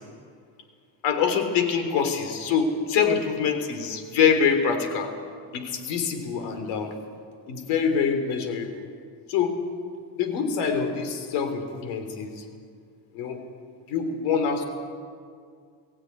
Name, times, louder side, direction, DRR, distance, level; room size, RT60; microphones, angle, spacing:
voice 1, 1.0-5.1 5.5-6.9 7.5-8.7 9.3-9.6 10.2-12.4 13.1-13.4 13.9-14.6, left 6 dB, 85° left, 7 dB, 3.6 m, -25 dB
22.5 x 15.5 x 9.6 m, 2.2 s
cardioid pair, 125°, 40 cm